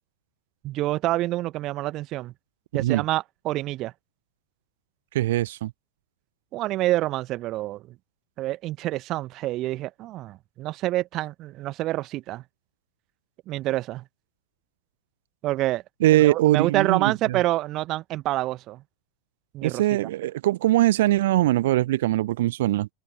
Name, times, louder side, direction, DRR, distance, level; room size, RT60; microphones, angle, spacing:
voice 1, 0.6-2.3 2.7-3.9 6.5-7.8 8.4-12.4 13.5-14.0 15.4-15.8 16.1-18.8 19.5-19.8, right 16 dB, 35° right, 1.3 m, -27 dB
voice 2, 5.1-5.7 16.0-17.4 19.6-22.9, right 15 dB, 55° right, 1.2 m, -21 dB
figure-of-eight pair, 90°, 0 cm